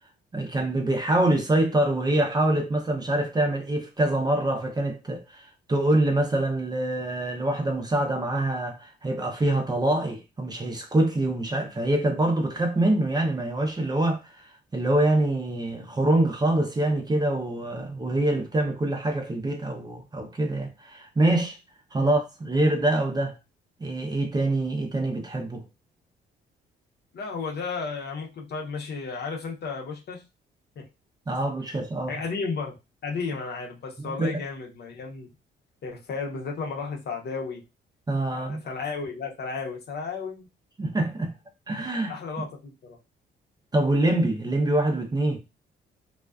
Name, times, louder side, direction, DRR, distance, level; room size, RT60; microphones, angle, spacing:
voice 1, 0.3-21.6 21.9-23.3 23.8-25.6 31.3-32.2 34.0-34.4 38.1-38.6 40.8-41.3 41.7-42.2 43.7-45.4, right 1 dB, 20° right, 0.5 m, -25 dB
voice 2, 27.1-30.2 30.8-30.9 32.1-32.8 33.0-35.3 35.8-37.6 38.3-40.5 42.1-43.0, left 4 dB, 55° left, 0.8 m, -33 dB
2.4 x 2.2 x 2.3 m
cardioid pair, 90°, 20 cm